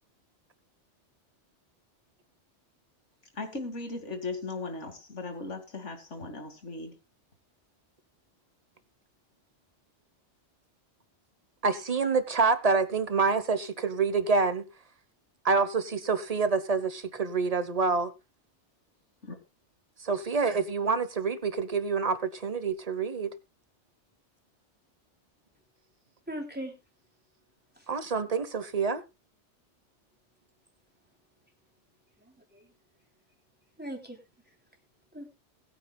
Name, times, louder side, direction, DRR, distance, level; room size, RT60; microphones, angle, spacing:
voice 1, 3.3-7.0 19.2-19.4, left 3 dB, 85° left, 2.6 m, -37 dB
voice 2, 11.6-14.7 15.4-18.1 20.0-23.3 27.9-29.0, right 4 dB, 35° right, 1.1 m, -27 dB
voice 3, 26.3-26.7 27.8-27.9 32.2-32.7 33.8-34.2 35.1-35.4, right 1 dB, 10° right, 3.3 m, -40 dB
20.5 x 9.0 x 2.3 m
omnidirectional pair, 1.2 m